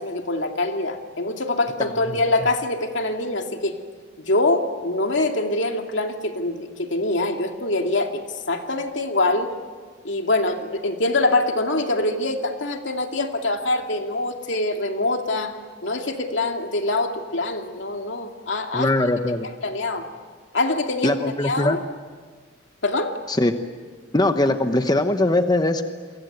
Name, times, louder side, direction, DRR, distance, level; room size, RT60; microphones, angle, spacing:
voice 1, 0.0-3.8 4.3-8.2 8.5-9.5 10.0-15.5 15.8-18.9 19.6-20.1 20.5-21.2 21.4-21.8 22.8-23.2, left 2 dB, 80° left, 4 dB, 2.4 m, -24 dB
voice 2, 18.7-19.5 21.0-21.8 23.3-23.5 24.1-25.8, left 2 dB, 20° left, 8 dB, 1.1 m, -21 dB
29.0 x 23.0 x 8.1 m, 1.5 s
head